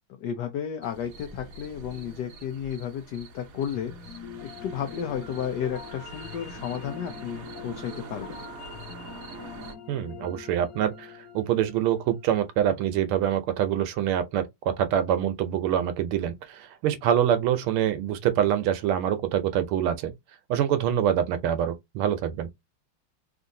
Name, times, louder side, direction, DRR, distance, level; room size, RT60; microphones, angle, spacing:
voice 1, 0.2-8.4, left 8 dB, 90° left, 0.9 m, -33 dB
sound 1, 0.8-9.7, right 4 dB, 60° right, 0.9 m, -45 dB
sound 2, 3.7-12.9, left 7 dB, 65° left, 1.1 m, -44 dB
voice 2, 9.9-14.5 14.8-20.1 20.5-22.5, right 10 dB, 80° right, 1.5 m, -25 dB
3.7 x 2.5 x 2.6 m
omnidirectional pair, 2.4 m